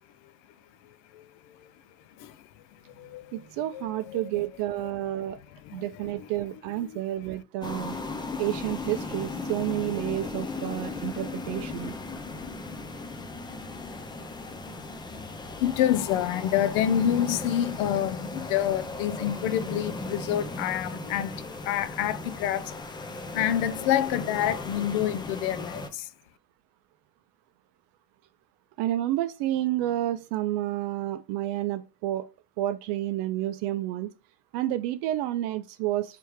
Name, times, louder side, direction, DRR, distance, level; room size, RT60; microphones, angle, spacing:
voice 1, 1.1-1.7 2.2-2.5 2.9-3.4 3.7-4.2 5.6-6.3 6.8-7.0 15.1-22.8 23.1-26.1, left 11 dB, 60° left, 0.6 m, -28 dB
voice 2, 3.3-5.4 5.7-8.0 8.4-11.9 28.8-32.3 32.6-34.1 34.5-36.2, right 14 dB, 60° right, 0.5 m, -30 dB
sound 1, 7.6-25.9, left 3 dB, 10° left, 0.3 m, -37 dB
3.3 x 3.2 x 4.8 m
supercardioid pair, 90°, 49 cm